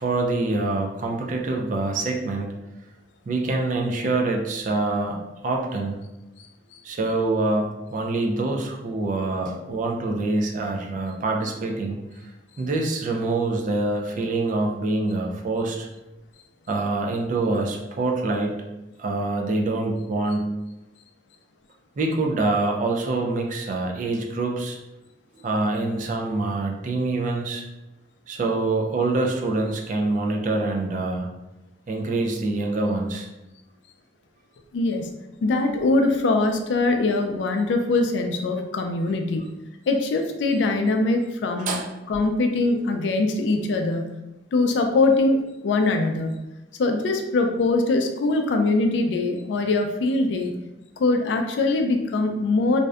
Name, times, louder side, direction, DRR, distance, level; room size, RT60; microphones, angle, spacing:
voice 1, 0.0-2.5 3.3-5.2 5.4-6.0 6.8-12.0 12.6-15.9 16.7-18.7 19.0-20.5 22.0-24.8 25.4-27.7 28.3-31.3 31.9-33.3 41.7-41.9, right 2 dB, 45° right, 1 dB, 0.3 m, -25 dB
voice 2, 34.7-35.1 35.4-39.5 39.9-41.8 42.1-44.2 44.5-46.4 46.8-50.5 51.0-52.8, left 2 dB, 85° left, 4 dB, 0.3 m, -22 dB
2.5 x 2.1 x 2.3 m, 0.97 s
head